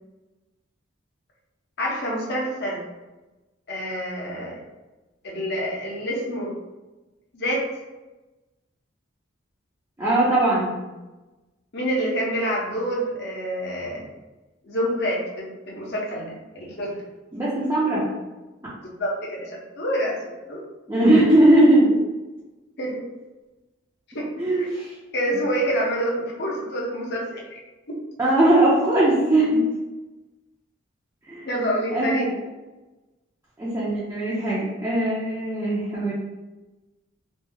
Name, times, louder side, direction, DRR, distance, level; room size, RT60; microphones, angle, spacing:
voice 1, 1.8-2.8 3.7-4.6 5.2-6.5 7.3-7.7 11.7-14.0 14.6-17.0 19.0-20.6 22.8-23.0 24.1-24.3 24.6-24.7 25.1-27.6 27.9-28.0 31.4-32.3, equal, 55° left, -3 dB, 0.8 m, -27 dB
voice 2, 10.0-10.7 17.3-18.0 20.9-21.9 24.4-24.9 28.2-29.6 31.3-31.5 31.9-32.3 33.6-36.1, right 1 dB, 15° right, -9 dB, 0.6 m, -19 dB
3.1 x 2.0 x 3.4 m, 1.1 s
head